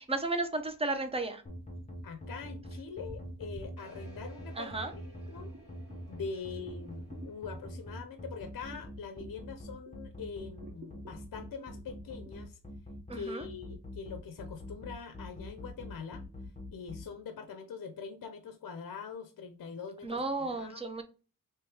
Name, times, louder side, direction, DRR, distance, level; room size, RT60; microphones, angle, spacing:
voice 1, 0.0-1.4 4.6-4.9 13.1-13.4 20.0-21.0, right 3 dB, 15° right, 7 dB, 0.6 m, -33 dB
sound 1, 1.5-17.0, equal, 20° left, 0.9 m, -44 dB
voice 2, 2.0-5.0 5.3-5.5 6.1-12.6 13.1-16.3 16.7-20.8, left 5 dB, 65° left, 8 dB, 0.6 m, -43 dB
sound 2, 3.8-8.8, right 1 dB, 55° right, 1.2 m, -58 dB
sound 3, 5.5-10.1 10.5-12.3, equal, 30° right, 1.0 m, -55 dB
3.1 x 3.1 x 3.3 m, 0.34 s
wide cardioid pair, 95°, 37 cm